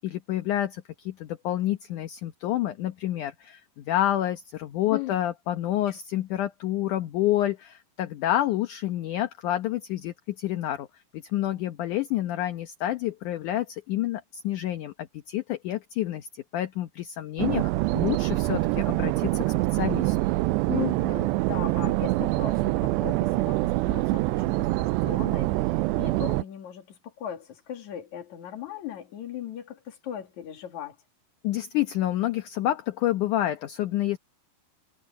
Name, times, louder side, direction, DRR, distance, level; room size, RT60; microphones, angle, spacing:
voice 1, 0.0-10.9 11.3-19.4 19.7-20.2 31.4-34.2, left 13 dB, 70° left, 2.0 m, -28 dB
voice 2, 4.9-5.2 20.7-31.0, left 11 dB, 50° left, 3.3 m, -38 dB
sound 1, 17.4-26.4, right 20 dB, 85° right, 2.7 m, -25 dB
omnidirectional pair, 4.8 m